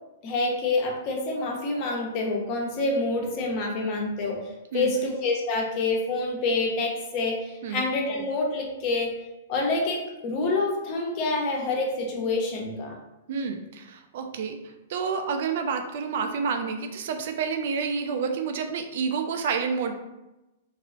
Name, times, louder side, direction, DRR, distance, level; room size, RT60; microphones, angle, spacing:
voice 1, 0.2-4.4 4.7-9.1 9.5-13.0, left 3 dB, 35° left, 0 dB, 0.7 m, -27 dB
voice 2, 4.7-5.1 7.6-7.8 13.3-14.6 14.9-20.0, right 5 dB, 55° right, 5 dB, 0.4 m, -29 dB
3.7 x 2.0 x 2.5 m, 0.99 s
figure-of-eight pair, 105°, 0 cm